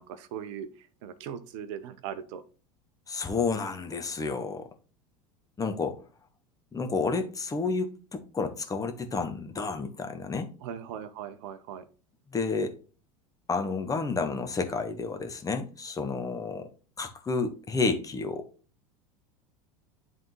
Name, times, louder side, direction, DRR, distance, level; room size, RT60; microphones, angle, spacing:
voice 1, 0.0-2.4 10.6-11.9, right 8 dB, 55° right, 0.8 m, -39 dB
voice 2, 3.1-4.7 5.6-6.0 6.7-10.5 12.3-12.7 13.5-16.7 17.0-18.5, left 4 dB, 20° left, 1.2 m, -30 dB
10.5 x 3.7 x 3.1 m
figure-of-eight pair, 80°, 19 cm